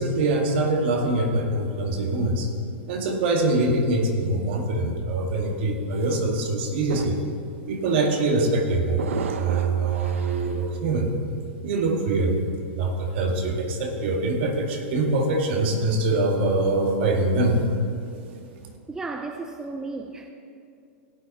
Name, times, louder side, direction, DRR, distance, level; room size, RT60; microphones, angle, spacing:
voice 1, 0.0-2.5 2.9-7.2 7.7-9.1 9.4-11.1 11.6-12.4 12.7-17.6, right 2 dB, 60° right, 3 dB, 1.9 m, -24 dB
sound 1, 6.0-6.1 6.7-7.4 7.7-8.0 9.0-10.6, right 6 dB, 80° right, 0.8 m, -34 dB
voice 2, 18.9-20.3, right 3 dB, 10° right, 4 dB, 0.5 m, -34 dB
16.5 x 8.8 x 4.2 m, 2.5 s
hypercardioid pair, 135°, 7 cm